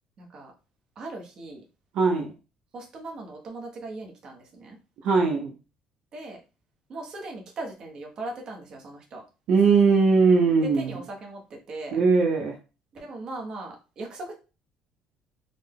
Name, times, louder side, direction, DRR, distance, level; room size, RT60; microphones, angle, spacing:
voice 1, 0.2-0.5 1.0-1.6 2.7-4.8 6.1-6.4 6.9-9.2 10.6-12.0 12.9-14.3, right 2 dB, 35° right, 0.8 m, -39 dB
voice 2, 1.9-2.3 5.0-5.5 9.5-11.0 11.9-12.6, right 4 dB, 60° right, 0.6 m, -20 dB
3.8 x 2.1 x 3.5 m
cardioid pair, 175°, 2 cm